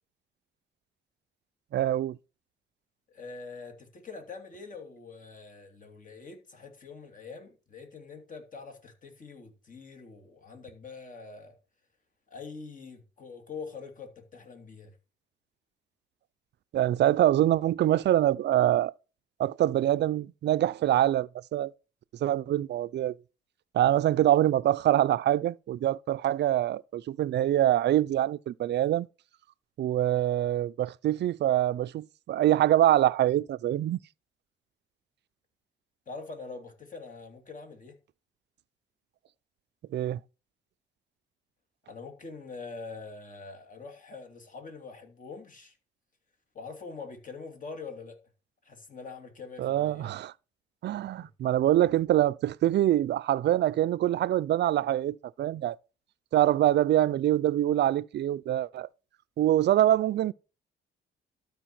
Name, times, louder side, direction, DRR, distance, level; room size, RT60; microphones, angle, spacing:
voice 1, 1.7-2.2 16.7-18.9 19.4-21.7 22.2-23.2 23.7-29.1 29.8-34.0 39.9-40.2 49.6-50.3 50.8-55.8 56.3-58.9 59.4-60.3, right 12 dB, 60° right, 0.5 m, -25 dB
voice 2, 3.1-11.6 12.3-14.9 36.1-38.0 41.9-45.8 46.5-48.2 48.6-50.1 51.2-51.3, left 4 dB, 40° left, 2.7 m, -44 dB
12.5 x 4.7 x 6.0 m
cardioid pair, 90°, 20 cm